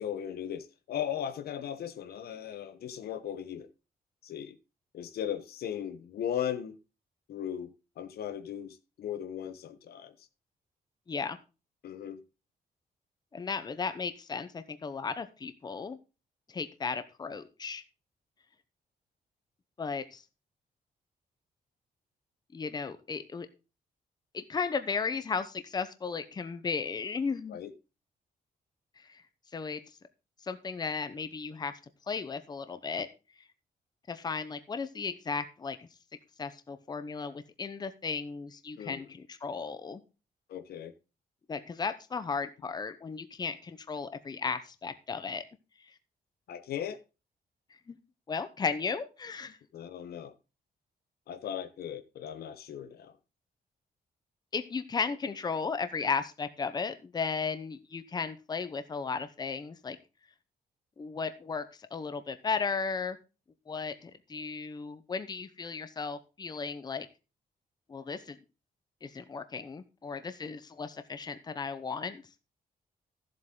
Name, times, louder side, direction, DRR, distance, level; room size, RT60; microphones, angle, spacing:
voice 1, 0.0-3.7 4.2-4.6 4.9-6.8 7.3-10.3 11.8-12.2 27.5-27.7 38.8-39.1 40.5-40.9 46.5-47.0 49.7-50.3 51.3-53.1, left 9 dB, 80° left, 1.0 m, -37 dB
voice 2, 13.3-16.0 16.5-17.8 19.8-20.2 22.5-23.5 24.3-27.6 29.0-29.2 29.5-29.8 30.4-31.7 32.1-33.1 34.1-35.9 36.4-40.0 41.5-45.4 45.8-45.9 47.9-48.0 48.3-49.6 54.5-60.0 61.0-63.2 63.7-67.1 67.9-68.4 69.0-72.2, left 5 dB, 25° left, 0.8 m, -35 dB
13.5 x 7.7 x 3.7 m
wide cardioid pair, 150°, 16 cm